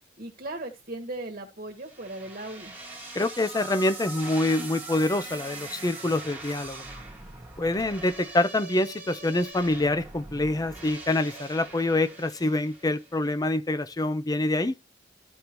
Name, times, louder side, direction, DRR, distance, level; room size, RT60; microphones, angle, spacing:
voice 1, 0.2-2.8, right 2 dB, 45° right, 1.5 m, -37 dB
sound 1, 1.8-13.1, right 2 dB, 10° right, 1.9 m, -42 dB
voice 2, 3.1-6.8 7.6-14.7, left 2 dB, 20° left, 0.5 m, -26 dB
14.0 x 5.2 x 3.0 m
head